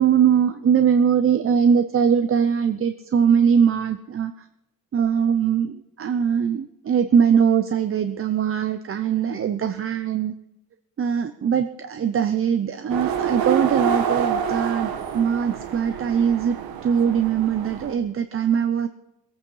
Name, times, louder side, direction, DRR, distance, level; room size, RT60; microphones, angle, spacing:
voice 1, 0.0-4.3 4.9-10.3 11.0-16.6 16.8-18.9, right 7 dB, 35° right, 9 dB, 0.7 m, -21 dB
sound 1, 12.9-17.9, right 8 dB, 85° right, 1.4 m, -27 dB
20.0 x 8.8 x 5.5 m, 0.86 s
cardioid pair, 130°, 36 cm